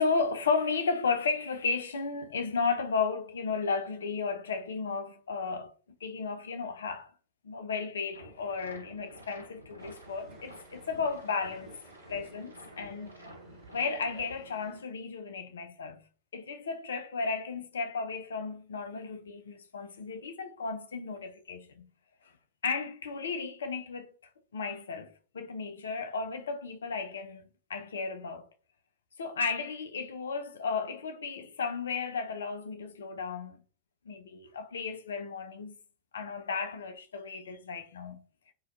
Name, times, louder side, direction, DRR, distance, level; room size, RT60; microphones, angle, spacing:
voice 1, 0.0-5.7 6.0-7.1 7.4-11.7 12.1-13.1 13.7-16.0 16.3-21.9 22.6-24.1 24.5-27.4 27.7-28.5 29.2-33.6 34.1-35.7 36.1-38.2, left 4 dB, 65° left, 0.3 m, -34 dB
sound 1, 8.1-13.9, equal, 85° right, 0.5 m, -51 dB
sound 2, 9.8-14.8, right 2 dB, 45° right, 1.1 m, -53 dB
2.3 x 2.1 x 2.5 m
figure-of-eight pair, 90°, 0 cm